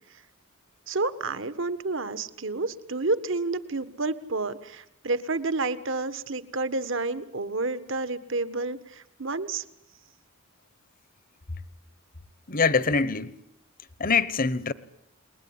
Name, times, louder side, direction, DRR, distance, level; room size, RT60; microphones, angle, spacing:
voice 1, 0.9-9.6, right 3 dB, 60° right, 1.6 m, -30 dB
voice 2, 12.5-13.4 14.0-14.7, left 5 dB, 40° left, 1.1 m, -24 dB
29.5 x 21.0 x 9.7 m
head